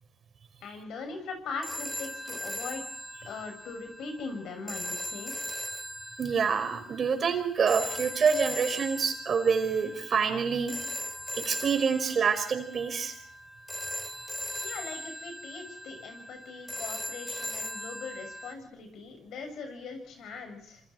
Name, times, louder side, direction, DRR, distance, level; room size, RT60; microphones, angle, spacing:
voice 1, 0.6-2.8 3.3-5.3 14.6-20.8, left 4 dB, 80° left, 6 dB, 7.1 m, -40 dB
sound 1, 1.6-18.5, equal, 5° left, 3.6 m, -39 dB
voice 2, 6.2-10.7 11.4-13.1, right 6 dB, 50° right, 7 dB, 5.2 m, -27 dB
27.0 x 26.5 x 4.6 m, 0.64 s
cardioid pair, 90°, 0 cm